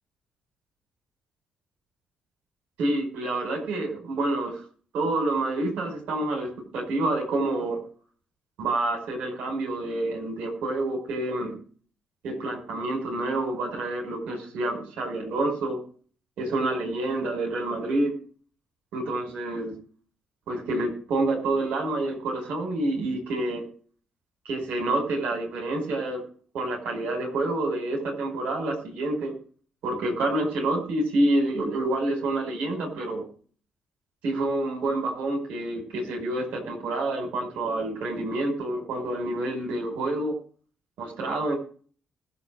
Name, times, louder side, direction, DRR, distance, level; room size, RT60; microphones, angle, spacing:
voice 1, 2.8-4.6 4.9-7.8 8.6-11.6 12.2-15.8 16.4-18.1 18.9-19.7 20.5-23.6 24.5-26.2 26.5-29.3 29.8-33.2 34.2-40.3 41.0-41.5, right 2 dB, 60° right, 1 dB, 5.4 m, -28 dB
20.5 x 7.7 x 4.8 m, 0.43 s
figure-of-eight pair, 40°, 3 cm